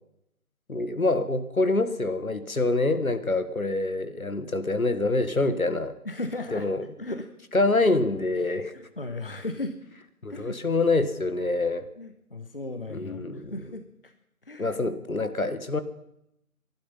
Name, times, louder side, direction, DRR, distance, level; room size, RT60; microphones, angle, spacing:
voice 1, 0.7-6.0 6.5-6.9 7.5-8.7 10.2-11.9 12.9-13.5 14.6-15.8, left 2 dB, 70° left, 11 dB, 1.7 m, -26 dB
voice 2, 6.0-7.3 8.7-9.7 10.3-10.6 12.0-14.1 14.5-14.8, left 2 dB, 40° left, 8 dB, 1.0 m, -36 dB
21.0 x 11.5 x 5.6 m, 0.80 s
figure-of-eight pair, 160°, 44 cm